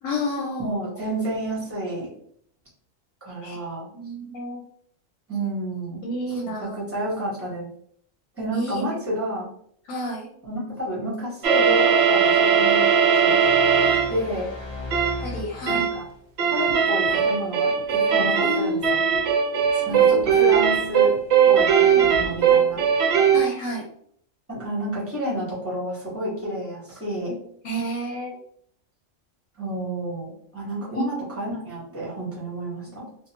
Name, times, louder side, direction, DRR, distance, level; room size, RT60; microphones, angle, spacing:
voice 1, 0.0-0.7 3.4-3.6 3.9-4.6 6.0-6.8 8.5-8.8 9.9-10.3 13.4-13.5 15.2-15.9 18.4-19.3 19.7-20.4 21.8-22.1 23.3-23.9 27.6-28.4 30.9-31.3, equal, 80° left, 0 dB, 1.0 m, -31 dB
voice 2, 0.6-2.1 3.2-3.9 5.3-6.0 6.6-7.7 8.4-9.5 10.4-12.9 13.1-13.4 14.1-14.5 15.7-16.1 16.5-19.0 19.9-21.1 21.5-22.8 24.5-27.4 29.6-33.1, right 1 dB, 10° right, -6 dB, 1.0 m, -30 dB
sound 1, 11.4-14.2 14.9-15.2 15.7-16.0 16.4-23.5, right 7 dB, 65° right, 0.7 m, -19 dB
sound 2, 13.4-16.2, left 2 dB, 30° left, 0.5 m, -36 dB
2.6 x 2.3 x 2.8 m, 0.65 s
omnidirectional pair, 1.3 m